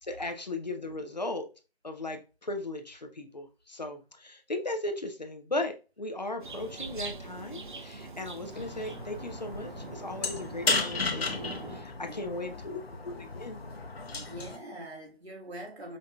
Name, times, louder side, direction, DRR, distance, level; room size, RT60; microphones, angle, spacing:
voice 1, 0.0-1.5 1.8-13.6, left 2 dB, 45° left, 0.5 m, -37 dB
sound 1, 6.4-11.8, right 3 dB, 50° right, 0.5 m, -43 dB
sound 2, 8.5-14.6, left 3 dB, 70° left, 0.8 m, -34 dB
voice 2, 12.0-12.8 14.1-16.0, right 1 dB, 80° right, 1.5 m, -44 dB
5.1 x 2.8 x 2.2 m
figure-of-eight pair, 170°, 31 cm